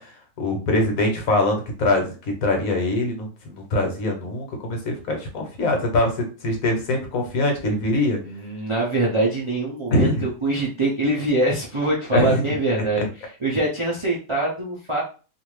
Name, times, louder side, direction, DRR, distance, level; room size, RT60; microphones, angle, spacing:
voice 1, 0.0-8.2 9.9-10.2 12.1-12.6 13.0-13.1, left 1 dB, 65° left, 2 dB, 1.2 m, -23 dB
voice 2, 8.2-13.0 13.4-15.0, right 2 dB, 50° right, -4 dB, 0.3 m, -23 dB
2.6 x 2.5 x 3.1 m, 0.35 s
omnidirectional pair, 1.6 m